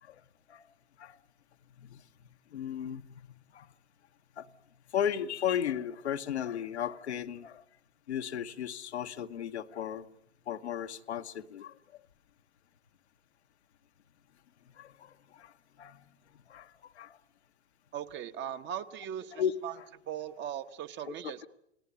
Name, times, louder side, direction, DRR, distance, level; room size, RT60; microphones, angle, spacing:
voice 1, 2.5-3.1 3.5-3.7 4.4-4.5 4.9-7.6 8.1-10.0 10.5-11.7 14.8-15.5 15.8-16.0 16.5-17.2 19.3-19.9 21.1-21.3, left 9 dB, 75° left, 7 dB, 1.2 m, -35 dB
voice 2, 17.9-19.7 20.1-21.5, right 10 dB, 35° right, 9 dB, 1.2 m, -39 dB
29.5 x 18.5 x 8.3 m, 0.78 s
hypercardioid pair, 100°, 33 cm